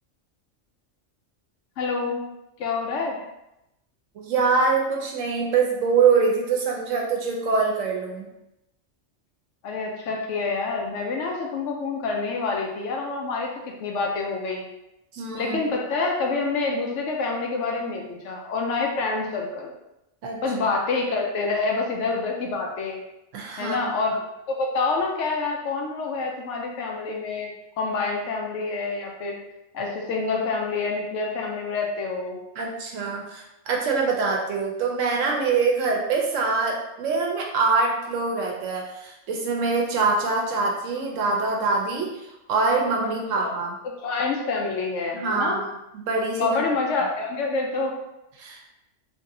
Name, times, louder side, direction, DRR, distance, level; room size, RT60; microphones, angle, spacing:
voice 1, 1.8-2.2 2.6-3.2 9.6-13.5 13.8-14.6 15.3-19.7 20.4-23.0 23.6-24.2 24.5-27.5 27.8-29.4 29.7-32.4 43.0-43.1 43.4-43.5 43.8-45.6 46.4-47.9, left 3 dB, 75° left, 0 dB, 0.9 m, -27 dB
voice 2, 4.1-8.3 15.1-15.6 20.2-20.4 23.3-23.9 32.6-43.8 45.1-46.6 48.4-48.6, right 4 dB, 90° right, 0 dB, 1.0 m, -24 dB
3.2 x 2.7 x 2.6 m, 0.89 s
omnidirectional pair, 1.3 m